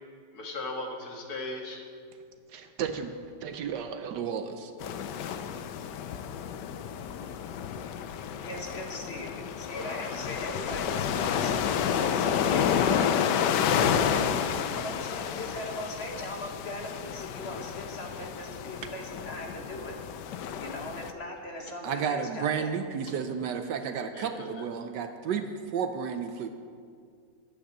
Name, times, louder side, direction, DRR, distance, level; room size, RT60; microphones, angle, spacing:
voice 1, 0.3-1.8 9.6-10.2 24.1-24.7, left 2 dB, 60° left, 2 dB, 2.1 m, -38 dB
voice 2, 2.5-3.1 3.4-4.7 21.8-26.5, right 7 dB, 75° right, 7 dB, 1.3 m, -32 dB
sound 1, 4.8-21.1, left 8 dB, 75° left, 1.2 m, -30 dB
voice 3, 8.4-13.1 13.7-14.3 14.7-20.0 20.6-22.7, left 1 dB, 40° left, 2 dB, 1.5 m, -39 dB
11.5 x 8.8 x 7.3 m, 2.2 s
omnidirectional pair, 1.9 m